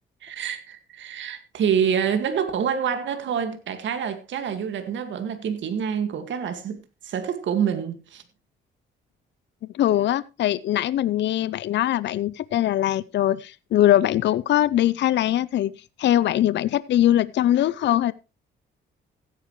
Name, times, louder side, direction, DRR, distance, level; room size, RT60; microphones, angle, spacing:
voice 1, 0.2-6.8 7.0-8.2, right 7 dB, 70° right, 2.0 m, -27 dB
voice 2, 9.7-15.7 16.0-18.1, left 12 dB, 65° left, 0.5 m, -21 dB
16.0 x 9.3 x 3.1 m
cardioid pair, 90°, 20 cm